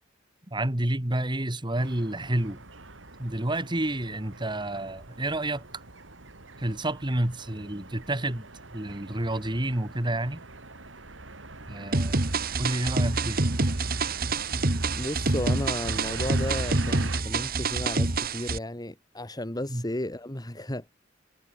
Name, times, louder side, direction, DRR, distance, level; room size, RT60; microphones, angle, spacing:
voice 1, 0.5-2.6 3.2-5.6 6.6-8.5 8.7-10.4 11.7-12.2 12.6-13.4 19.7-19.8, right 1 dB, 25° right, 2.0 m, -29 dB
sound 1, 1.8-17.2, right 2 dB, 75° right, 3.3 m, -43 dB
sound 2, 11.9-18.6, right 3 dB, 50° right, 1.7 m, -27 dB
voice 2, 15.0-20.9, left 1 dB, 20° left, 2.4 m, -34 dB
head